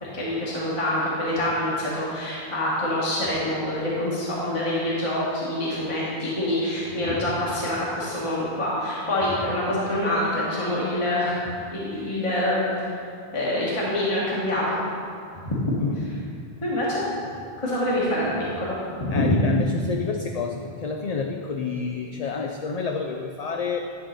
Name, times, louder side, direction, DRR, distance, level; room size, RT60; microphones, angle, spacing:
voice 1, 0.0-11.4 11.7-12.6 13.3-14.8 15.4-15.9 16.6-17.1 17.6-19.4, left 1 dB, 30° left, -7 dB, 1.4 m, -26 dB
voice 2, 19.1-23.9, left 5 dB, 50° left, 3 dB, 0.5 m, -29 dB
11.0 x 3.8 x 6.4 m, 2.4 s
omnidirectional pair, 1.0 m